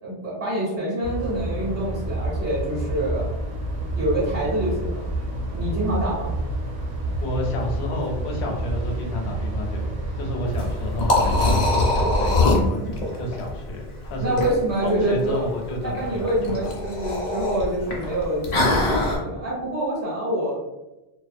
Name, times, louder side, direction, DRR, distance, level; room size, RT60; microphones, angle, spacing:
voice 1, 0.0-3.3 3.9-5.0 5.5-6.3 14.2-15.4 15.8-20.6, right 1 dB, 55° right, -5 dB, 0.9 m, -26 dB
sound 1, 1.0-12.2, right 1 dB, 85° right, 0.9 m, -29 dB
voice 2, 7.2-14.4 14.8-16.7, left 2 dB, 80° left, 1 dB, 0.8 m, -30 dB
Liquid, 10.5-19.2, left 2 dB, 50° left, 0.5 m, -23 dB
2.3 x 2.2 x 2.5 m, 1.0 s
omnidirectional pair, 1.1 m